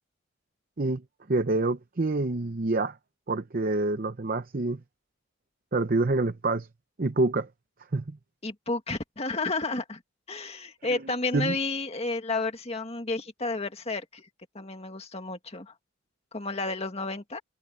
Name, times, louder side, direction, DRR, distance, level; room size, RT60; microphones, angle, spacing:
voice 1, 1.3-3.0 3.3-4.8 5.7-6.7 7.0-7.5 7.9-8.2 10.9-11.0 11.3-11.5, right 2 dB, 45° right, 0.7 m, -27 dB
voice 2, 8.4-10.0 10.3-14.3 14.5-15.7 16.3-17.4, left 3 dB, 30° left, 2.0 m, -31 dB
head